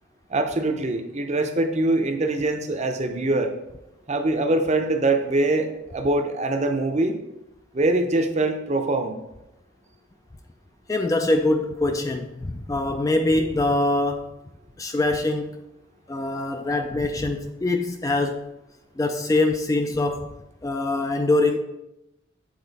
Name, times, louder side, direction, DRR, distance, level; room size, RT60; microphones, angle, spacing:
voice 1, 0.3-3.5 4.1-7.2 7.7-9.2, right 2 dB, 35° right, 0.6 m, -23 dB
voice 2, 10.9-14.3 14.8-15.6 16.1-18.5 19.0-20.3 20.6-21.6, left 2 dB, 15° left, 0.3 m, -23 dB
8.0 x 4.2 x 4.0 m
head